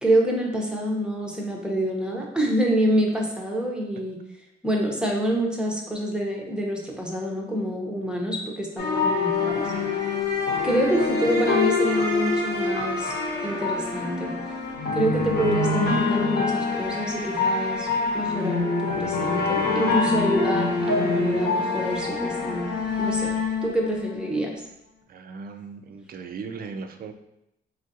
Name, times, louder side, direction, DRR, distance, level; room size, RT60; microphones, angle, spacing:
voice 1, 0.0-4.2 4.6-9.7 10.0-10.1 10.6-13.1 13.4-14.3 14.9-17.9 18.1-22.7 23.0-23.3 23.6-24.6, right 1 dB, 5° right, -1 dB, 0.7 m, -26 dB
sound 1, 8.8-24.3, left 3 dB, 55° left, 0.9 m, -25 dB
voice 2, 25.1-27.1, right 5 dB, 50° right, 7 dB, 0.4 m, -37 dB
3.6 x 2.4 x 2.6 m, 0.84 s
cardioid pair, 90°, 20 cm